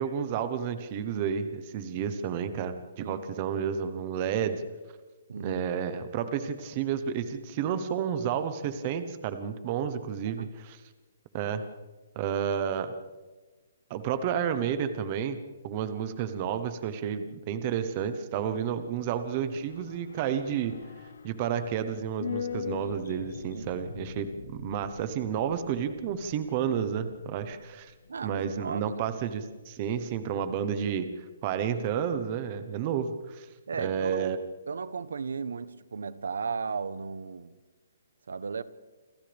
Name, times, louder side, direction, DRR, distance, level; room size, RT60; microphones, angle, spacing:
voice 1, 0.0-4.6 5.4-10.8 11.3-11.7 12.2-12.9 13.9-20.8 21.2-27.9 28.2-33.5 33.8-34.4, right 8 dB, 20° right, 0.9 m, -31 dB
voice 2, 5.3-5.6 10.2-10.5 23.5-23.7 28.1-29.0 33.7-34.4 34.7-37.5 38.3-38.6, right 5 dB, 85° right, 1.0 m, -35 dB
sound 1, 18.8-29.2 29.5-29.6, left 7 dB, 70° left, 1.3 m, -42 dB
28.0 x 26.5 x 3.5 m
hypercardioid pair, 180°, 0 cm